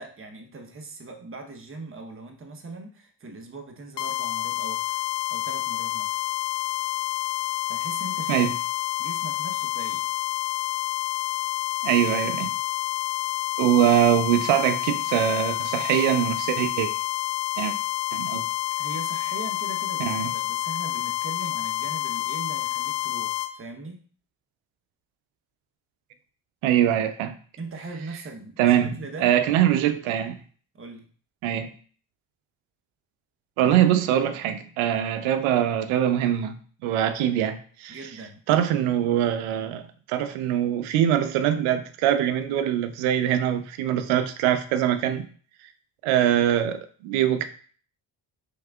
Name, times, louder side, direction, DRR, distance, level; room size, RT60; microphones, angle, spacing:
voice 1, 0.0-5.0 5.3-6.2 7.7-8.5 9.0-10.0 18.8-24.0 27.6-29.3 30.0-30.3 30.7-31.1 37.9-38.4, right 3 dB, 25° right, 0.9 m, -40 dB
sound 1, 4.0-23.5, left 15 dB, 60° left, 0.6 m, -28 dB
voice 2, 11.8-12.5 13.6-16.9 17.6-17.7 18.1-18.4 20.0-20.3 26.6-27.4 28.6-30.3 31.4-31.7 33.6-38.0 38.5-45.2 46.0-47.4, right 11 dB, 85° right, 0.6 m, -23 dB
4.7 x 3.6 x 2.3 m
supercardioid pair, 55°, 47 cm